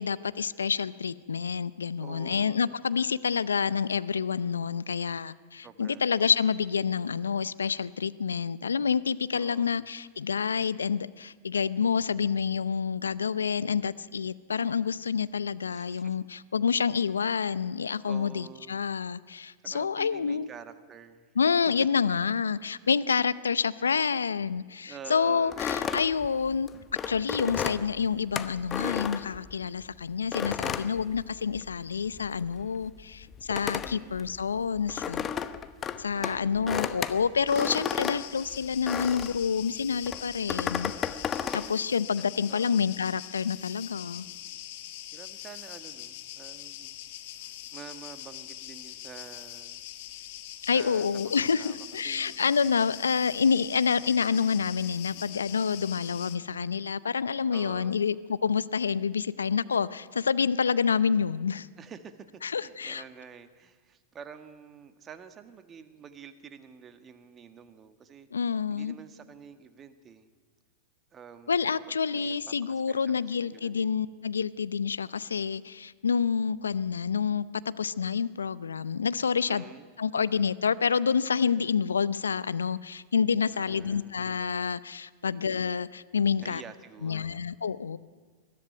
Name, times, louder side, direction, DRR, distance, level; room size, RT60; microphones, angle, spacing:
voice 1, 0.0-20.5 21.4-26.7 27.1-35.2 36.0-40.9 41.5-44.3 50.7-61.7 62.4-63.0 68.3-68.9 71.5-77.5 77.8-79.6 80.0-86.6 87.0-88.0, left 6 dB, 85° left, 17 dB, 0.6 m, -28 dB
voice 2, 2.0-2.8 5.6-6.1 9.3-9.9 15.6-16.3 18.0-18.8 19.6-21.5 24.8-26.1 33.7-34.3 36.1-37.0 42.2-42.9 45.1-47.0 47.7-49.8 50.6-52.4 57.5-58.0 61.8-70.3 71.1-71.8 72.1-72.4 72.7-73.9 79.5-79.8 83.5-84.2 85.3-85.5 86.4-87.5, right 7 dB, 25° right, 9 dB, 1.6 m, -48 dB
sound 1, 25.5-29.8 30.3-31.8 32.1-39.4 40.0-41.7, left 8 dB, 30° left, 1.0 m, -33 dB
sound 2, 37.5-56.4, left 13 dB, 55° left, 1.6 m, -43 dB
21.0 x 14.0 x 9.3 m, 1.5 s
hypercardioid pair, 100°, 0 cm